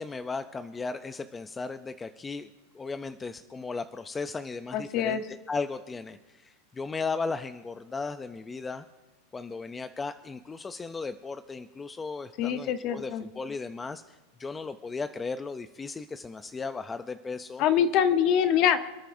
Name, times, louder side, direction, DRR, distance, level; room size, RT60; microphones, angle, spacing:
voice 1, 0.0-2.5 2.7-8.8 9.3-17.6, left 4 dB, 10° left, 10 dB, 0.4 m, -36 dB
voice 2, 4.7-5.2 12.4-13.2 17.6-18.8, left 9 dB, 40° left, 10 dB, 0.9 m, -24 dB
27.0 x 10.5 x 2.6 m, 1.2 s
supercardioid pair, 150°, 0 cm